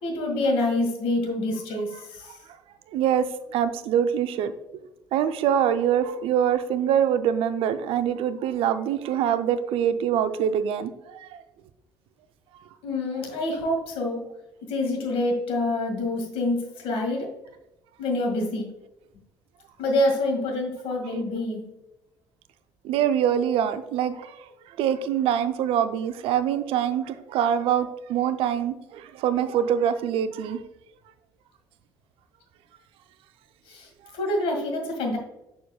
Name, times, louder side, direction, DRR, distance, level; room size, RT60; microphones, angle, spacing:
voice 1, 0.0-2.3 12.8-14.3 14.6-17.3 18.0-18.7 19.8-21.7 33.7-33.9 34.1-35.2, left 1 dB, 65° left, 2 dB, 1.8 m, -26 dB
voice 2, 2.9-3.3 3.5-4.5 5.1-11.3 22.8-24.3 24.8-30.7, right 9 dB, 65° right, 11 dB, 0.5 m, -24 dB
6.8 x 6.4 x 2.2 m, 0.92 s
hypercardioid pair, 50°, 10 cm